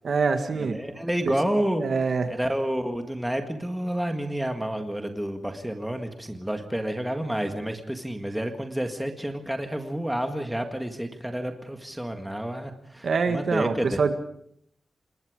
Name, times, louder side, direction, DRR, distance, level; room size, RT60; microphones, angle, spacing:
voice 1, 0.0-0.8 1.8-2.3 13.0-14.1, right 5 dB, 55° right, 7 dB, 1.9 m, -24 dB
voice 2, 0.7-1.8 2.3-14.0, right 1 dB, 5° right, 5 dB, 1.8 m, -29 dB
27.5 x 20.5 x 5.1 m, 0.69 s
wide cardioid pair, 175°, 0 cm